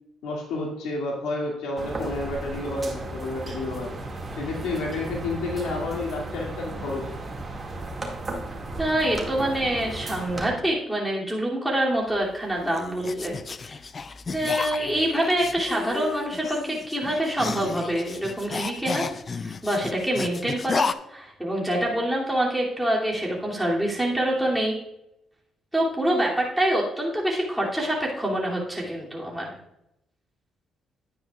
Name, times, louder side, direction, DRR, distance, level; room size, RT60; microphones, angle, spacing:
voice 1, 0.2-4.0 4.3-7.2, left 2 dB, 85° left, -2 dB, 2.2 m, -30 dB
sound 1, 1.8-10.5, right 2 dB, 30° right, 2.0 m, -35 dB
voice 2, 8.8-13.4 13.6-13.8 14.3-19.1 19.4-20.8 21.1-24.8 25.7-29.5, right 1 dB, ahead, -4 dB, 2.6 m, -26 dB
sound 2, 12.1-20.9, left 4 dB, 35° left, 0.4 m, -33 dB
10.5 x 9.2 x 2.4 m, 0.84 s
cardioid pair, 90°, 0 cm